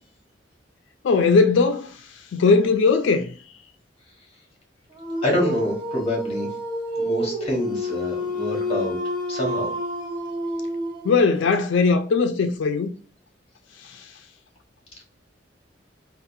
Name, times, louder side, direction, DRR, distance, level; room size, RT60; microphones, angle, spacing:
voice 1, 1.0-1.9 2.3-3.3 11.0-12.9 13.8-14.0, left 4 dB, 90° left, 0.4 m, -19 dB
Dog, 4.9-11.3, equal, 25° right, 0.7 m, -29 dB
voice 2, 5.2-6.5 6.9-8.9 9.3-9.7, equal, 30° left, 1.4 m, -26 dB
3.8 x 2.4 x 2.7 m
head